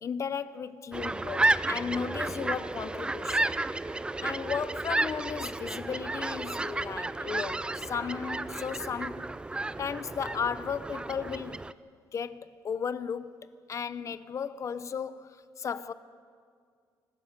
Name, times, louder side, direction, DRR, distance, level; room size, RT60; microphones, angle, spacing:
voice 1, 0.0-3.6 4.2-9.4 9.8-11.7 12.1-15.9, left 6 dB, 45° left, 0.8 m, -35 dB
sound 1, 0.9-11.7, right 2 dB, 15° right, 0.5 m, -32 dB
25.5 x 15.5 x 6.7 m
cardioid pair, 125°, 7 cm